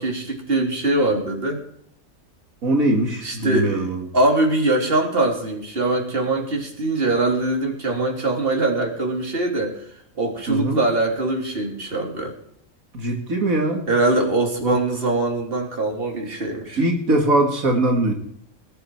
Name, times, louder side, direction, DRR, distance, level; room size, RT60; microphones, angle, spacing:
voice 1, 0.0-1.6 3.2-3.9 4.1-9.8 10.2-12.3 13.9-16.8, right 2 dB, 40° right, 2 dB, 3.3 m, -22 dB
voice 2, 2.6-4.1 10.5-10.8 12.9-13.9 14.6-14.8 16.8-18.1, right 1 dB, 75° right, 2 dB, 2.6 m, -21 dB
20.0 x 12.0 x 4.6 m, 0.67 s
omnidirectional pair, 1.5 m